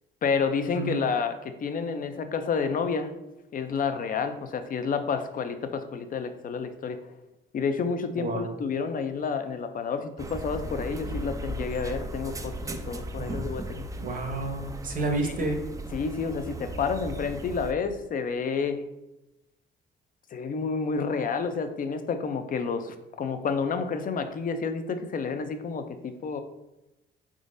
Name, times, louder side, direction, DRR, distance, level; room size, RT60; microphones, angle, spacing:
voice 1, 0.2-3.1 3.5-7.0 7.5-12.5 12.9-13.8 15.2-15.3 15.9-18.8 20.3-26.4, left 5 dB, 45° left, 8 dB, 0.5 m, -30 dB
sound 1, 10.2-17.7, right 1 dB, 15° right, 0.4 m, -36 dB
voice 2, 14.0-15.6, right 2 dB, 45° right, 3 dB, 0.8 m, -30 dB
4.0 x 3.7 x 2.5 m, 0.97 s
cardioid pair, 90°, 20 cm